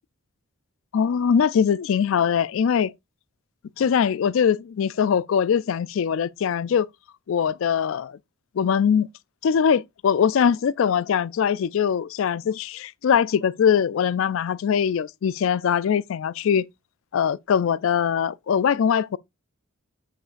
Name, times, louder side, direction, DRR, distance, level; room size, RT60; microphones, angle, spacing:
voice 1, 0.9-2.9 3.8-6.9 7.3-8.2 8.6-9.1 9.4-16.6 17.1-19.2, left 7 dB, 65° left, 0.3 m, -22 dB
8.5 x 5.6 x 2.5 m
head